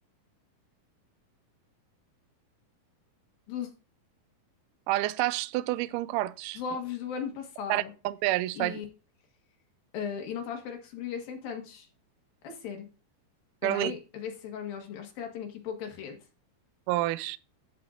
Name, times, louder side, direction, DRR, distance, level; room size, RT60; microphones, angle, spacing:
voice 1, 4.9-6.6 7.7-8.8 13.6-13.9 16.9-17.4, right 16 dB, 90° right, 1.8 m, -29 dB
voice 2, 6.5-7.9 8.5-8.8 9.9-11.9 12.4-12.9 13.6-16.2, left 7 dB, 70° left, 3.3 m, -37 dB
13.5 x 5.7 x 2.5 m
omnidirectional pair, 4.3 m